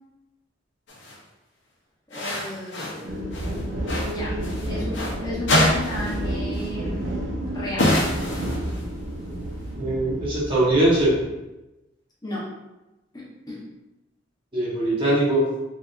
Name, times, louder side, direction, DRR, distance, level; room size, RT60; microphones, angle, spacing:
sound 1, 0.9-1.2 2.1-3.0 3.3-5.2 5.5-6.3 6.5-6.7 7.8-8.9, left 1 dB, 70° left, 0.6 m, -25 dB
voice 1, 2.1-8.0 12.2-12.5 13.1-13.6, left 1 dB, 20° left, -7 dB, 0.8 m, -35 dB
sound 2, 3.0-11.3, right 1 dB, 85° right, 0.6 m, -30 dB
voice 2, 9.8-11.2 14.5-15.5, right 1 dB, 30° right, -7 dB, 0.9 m, -21 dB
3.4 x 2.7 x 2.4 m, 0.99 s
head